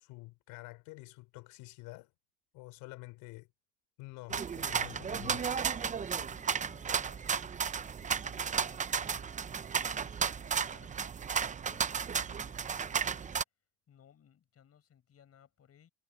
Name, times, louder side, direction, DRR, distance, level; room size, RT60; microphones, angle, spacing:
voice 1, 0.0-2.1 2.5-3.5 4.0-5.4, left 22 dB, 90° left, 4.3 m, -48 dB
sound 1, 4.3-13.4, right 6 dB, 20° right, 0.6 m, -34 dB
voice 2, 5.8-11.2 11.6-13.4 13.9-15.9, left 9 dB, 45° left, 6.8 m, -62 dB
cardioid pair, 115°, 33 cm